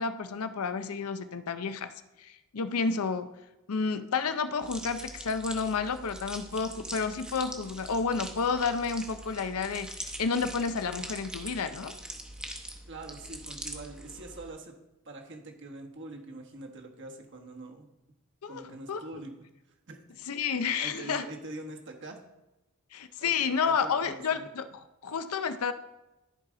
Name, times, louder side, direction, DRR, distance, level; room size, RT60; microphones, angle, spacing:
voice 1, 0.0-1.9 2.2-3.3 3.7-12.0 18.4-19.0 20.3-21.3 22.9-24.7 25.0-25.7, left 5 dB, 80° left, 11 dB, 0.6 m, -30 dB
sound 1, 4.6-14.5, right 1 dB, 5° right, 0.8 m, -43 dB
voice 2, 12.9-14.7 15.0-17.9 18.5-19.3 19.9-20.0 20.5-22.2 23.2-24.5, right 2 dB, 55° right, 2 dB, 1.3 m, -44 dB
13.5 x 4.9 x 3.8 m, 0.97 s
head